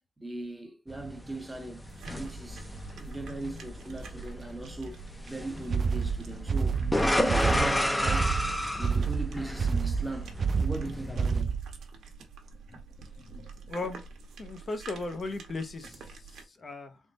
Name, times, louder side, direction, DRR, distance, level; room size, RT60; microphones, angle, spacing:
voice 1, 0.2-1.8 2.1-6.8 7.1-8.4 8.7-11.6, right 2 dB, 15° right, 1.2 m, -39 dB
sound 1, 0.9-11.4, left 1 dB, 10° left, 0.7 m, -32 dB
sound 2, 1.8-16.4, right 4 dB, 80° right, 1.1 m, -46 dB
sound 3, 5.7-11.8, right 5 dB, 55° right, 0.3 m, -28 dB
voice 2, 12.7-14.1 14.4-17.0, left 3 dB, 45° left, 0.8 m, -38 dB
3.6 x 2.5 x 4.0 m
cardioid pair, 70°, 0 cm